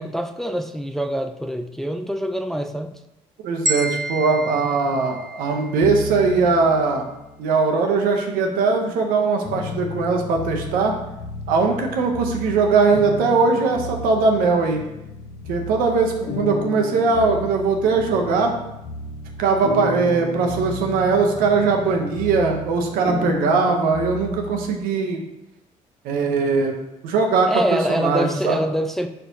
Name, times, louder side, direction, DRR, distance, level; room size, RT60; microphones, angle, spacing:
voice 1, 0.0-2.9 27.5-29.1, equal, ahead, 7 dB, 0.3 m, -25 dB
voice 2, 3.4-7.1 7.4-10.9 11.5-14.8 15.5-18.6 19.4-25.2 26.0-26.8 27.0-28.6, right 4 dB, 90° right, 2 dB, 0.7 m, -20 dB
sound 1, 3.7-5.8, right 1 dB, 25° right, 0.8 m, -29 dB
sound 2, 5.8-7.5 8.2-24.7, left 3 dB, 65° left, 0.7 m, -33 dB
4.4 x 4.2 x 2.7 m, 0.91 s
cardioid pair, 80°, 14 cm